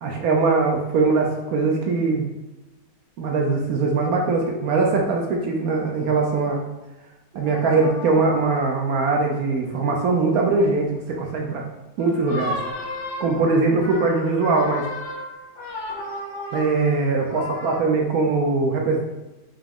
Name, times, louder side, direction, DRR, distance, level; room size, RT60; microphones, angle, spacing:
voice 1, 0.0-2.2 3.2-6.6 7.3-11.6 12.0-12.6 13.2-14.8 16.5-19.0, right 3 dB, 70° right, 0 dB, 0.9 m, -21 dB
sound 1, 7.4-8.7 9.8-10.1 12.0-17.8, left 2 dB, 55° left, 1.0 m, -34 dB
3.6 x 2.9 x 3.5 m, 1.0 s
omnidirectional pair, 1.9 m